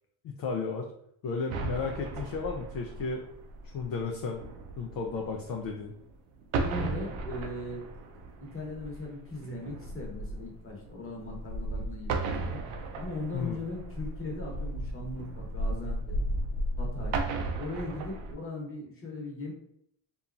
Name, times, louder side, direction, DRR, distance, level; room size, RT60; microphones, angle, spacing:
voice 1, 0.2-0.9 1.2-3.2 3.6-4.4 4.8-5.9 13.3-13.6, left 4 dB, 50° left, 1 dB, 0.5 m, -33 dB
sound 1, 1.5-6.1 6.4-18.3, right 2 dB, 80° right, 0.6 m, -35 dB
voice 2, 6.6-7.8 8.4-12.6 12.9-16.2 16.8-17.2 17.6-19.5, left 2 dB, 25° left, -1 dB, 1.0 m, -39 dB
2.8 x 2.3 x 2.4 m, 0.71 s
supercardioid pair, 85°, 49 cm